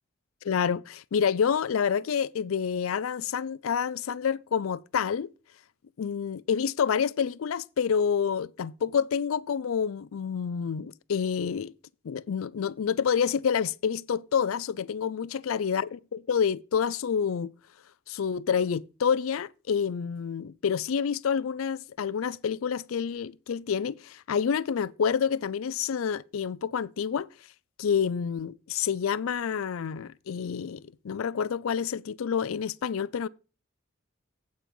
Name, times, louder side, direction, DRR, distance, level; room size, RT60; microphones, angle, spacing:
voice 1, 0.4-5.3 6.0-11.7 12.0-17.5 18.1-27.3 27.8-33.3, left 7 dB, 90° left, 0.4 m, -28 dB
8.6 x 7.4 x 5.3 m
head